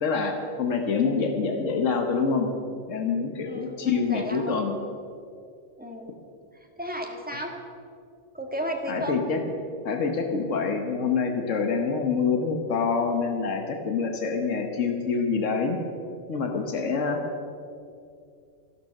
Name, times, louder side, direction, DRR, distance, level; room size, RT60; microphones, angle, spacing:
voice 1, 0.0-2.5 2.9-4.8 7.3-7.4 8.9-9.4 9.8-15.8 16.3-17.2, left 5 dB, 80° left, 4 dB, 1.5 m, -26 dB
voice 2, 3.4-4.6 5.8-6.1 6.8-7.5 8.3-9.2 16.7-17.1, equal, 5° right, 1 dB, 1.6 m, -34 dB
13.0 x 12.0 x 6.5 m, 2.4 s
omnidirectional pair, 1.3 m